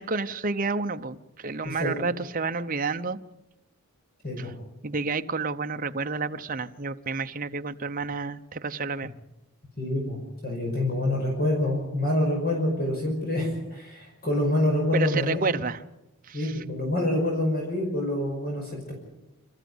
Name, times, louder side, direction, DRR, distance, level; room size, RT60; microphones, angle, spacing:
voice 1, 0.0-3.2 4.4-4.5 4.8-9.1 14.9-15.8 16.2-16.6, right 4 dB, 40° right, 0.8 m, -30 dB
voice 2, 9.8-15.4 16.3-18.9, left 1 dB, 40° left, 5.6 m, -26 dB
27.5 x 14.5 x 7.9 m
head